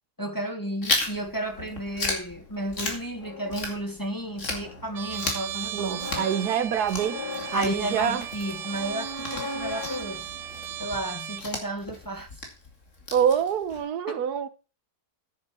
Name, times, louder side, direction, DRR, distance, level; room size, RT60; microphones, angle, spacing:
voice 1, 0.2-6.3 7.5-10.3 10.8-12.3 14.1-14.2, right 1 dB, 15° left, 1.2 m, -33 dB
Chewing mastication, 0.8-4.1 4.4-13.8, left 2 dB, 50° left, 2.8 m, -35 dB
sound 1, 1.5-11.4, left 3 dB, 80° left, 2.4 m, -41 dB
Trumpet, 4.9-11.5, right 10 dB, 60° right, 1.0 m, -36 dB
voice 2, 5.7-7.2 7.5-8.2 13.1-14.5, right 8 dB, 75° right, 1.4 m, -26 dB
9.4 x 7.0 x 6.1 m
omnidirectional pair, 1.7 m